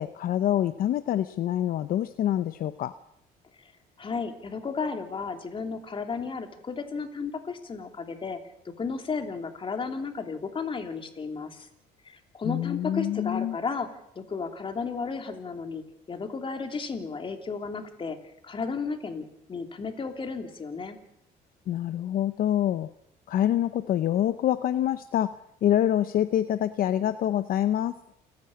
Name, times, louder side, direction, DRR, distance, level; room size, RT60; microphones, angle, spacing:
voice 1, 0.0-2.9 12.4-13.6 21.7-22.9 23.3-28.0, left 11 dB, 60° left, 12 dB, 0.8 m, -26 dB
voice 2, 4.0-8.4 8.8-11.7 12.0-13.9 14.1-18.2 18.4-21.0, left 4 dB, 30° left, 5 dB, 2.9 m, -33 dB
28.5 x 10.5 x 8.7 m, 0.77 s
cardioid pair, 110°, 17 cm